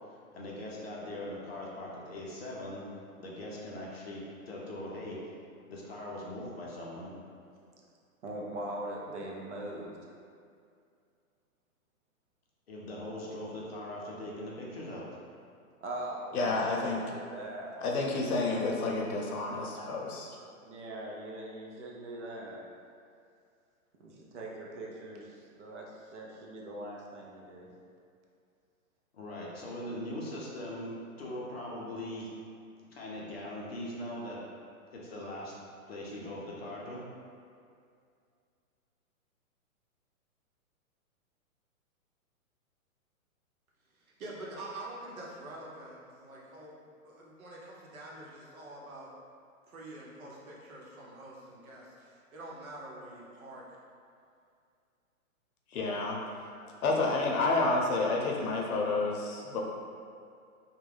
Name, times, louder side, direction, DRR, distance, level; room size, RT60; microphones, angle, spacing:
voice 1, 0.0-2.9 3.2-5.2 5.7-7.1 12.7-15.0 29.1-30.9 31.2-32.3 32.9-34.4 34.9-35.6 35.9-37.0, left 1 dB, 45° left, -4 dB, 0.5 m, -41 dB
voice 2, 8.2-10.0 15.8-17.8 18.6-18.8 20.6-22.6 24.0-27.7, right 1 dB, 55° right, -2 dB, 0.5 m, -41 dB
voice 3, 16.3-17.0 17.8-20.4 55.7-56.2 56.7-59.6, left 3 dB, 80° left, -1 dB, 0.7 m, -30 dB
voice 4, 43.9-49.1 49.7-53.6, right 2 dB, 70° right, -5 dB, 0.8 m, -46 dB
2.3 x 2.2 x 3.2 m, 2.3 s
hypercardioid pair, 170°, 43 cm